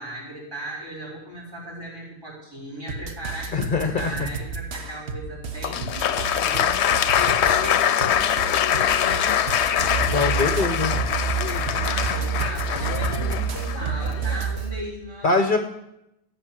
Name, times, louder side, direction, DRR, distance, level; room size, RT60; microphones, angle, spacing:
voice 1, 0.0-10.0 11.5-15.5, equal, 20° right, -5 dB, 6.6 m, -37 dB
sound 1, 2.9-14.6, right 4 dB, 80° right, 1.3 m, -34 dB
voice 2, 3.5-4.1 10.1-10.9 15.2-15.6, left 4 dB, 50° left, 6 dB, 1.1 m, -22 dB
Applause, 5.6-14.6, left 9 dB, 80° left, 0.9 m, -23 dB
sound 2, 9.8-14.8, right 7 dB, 55° right, 1.6 m, -28 dB
16.0 x 7.1 x 7.5 m, 0.84 s
omnidirectional pair, 1.1 m